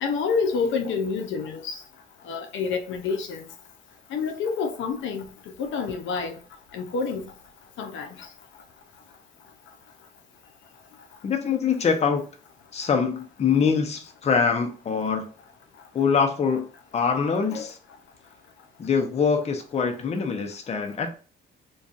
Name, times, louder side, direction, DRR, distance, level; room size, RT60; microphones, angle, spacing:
voice 1, 0.0-1.8 2.3-3.4 4.1-5.3 5.6-6.4 6.7-7.2 7.8-8.1 17.5-17.7, left 5 dB, 75° left, 0.6 m, -28 dB
voice 2, 11.2-12.3 12.7-15.3 15.9-16.7 16.9-17.8 18.8-21.1, left 6 dB, 35° left, 0.5 m, -24 dB
2.6 x 2.3 x 2.4 m
cardioid pair, 90°, 20 cm